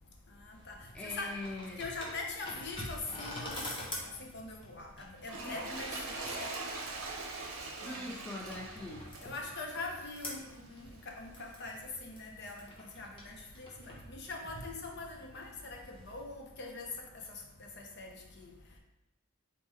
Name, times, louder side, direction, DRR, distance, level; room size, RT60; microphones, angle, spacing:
voice 1, 0.4-0.7 1.0-1.3 1.8-3.7 4.0-6.5 7.8-8.1 9.2-16.9 17.6-18.5, left 3 dB, 55° left, 1 dB, 0.7 m, -43 dB
sound 1, 0.5-16.2, left 1 dB, 25° left, 0.9 m, -47 dB
voice 2, 0.9-1.8 7.8-9.0, left 2 dB, 5° left, -2 dB, 0.4 m, -42 dB
Toilet flush, 5.2-10.7 11.4-11.5, right 3 dB, 75° right, 0.8 m, -42 dB
4.2 x 3.5 x 3.3 m, 0.92 s
head